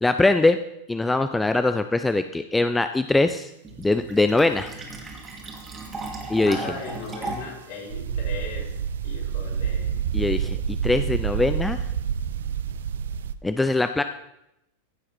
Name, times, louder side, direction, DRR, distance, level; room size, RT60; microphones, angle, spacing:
voice 1, 0.0-0.6 0.9-3.5 3.8-4.7 6.3-6.7 10.1-10.6 10.8-11.9 13.4-14.0, left 2 dB, 10° left, 9 dB, 0.4 m, -22 dB
Fill (with liquid), 3.6-7.6, right 3 dB, 20° right, 2.2 m, -36 dB
voice 2, 6.4-8.7 9.0-10.0, left 3 dB, 55° left, -2 dB, 4.2 m, -37 dB
sound 1, 7.9-13.3, right 8 dB, 60° right, 0.5 m, -28 dB
15.5 x 6.5 x 4.2 m, 0.86 s
figure-of-eight pair, 90°, 0 cm